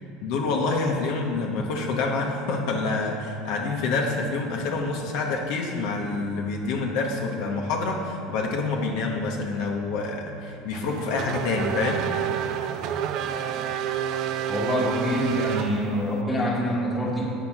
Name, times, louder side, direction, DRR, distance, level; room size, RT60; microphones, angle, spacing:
voice 1, 0.2-12.0, left 3 dB, 70° left, 0 dB, 1.0 m, -27 dB
Race car auto racing / Accelerating revving vroom, 10.7-16.2, right 9 dB, 55° right, 0.4 m, -29 dB
voice 2, 14.5-17.3, equal, 10° left, -4 dB, 1.6 m, -26 dB
7.9 x 5.2 x 5.9 m, 2.5 s
cardioid pair, 140°, 0 cm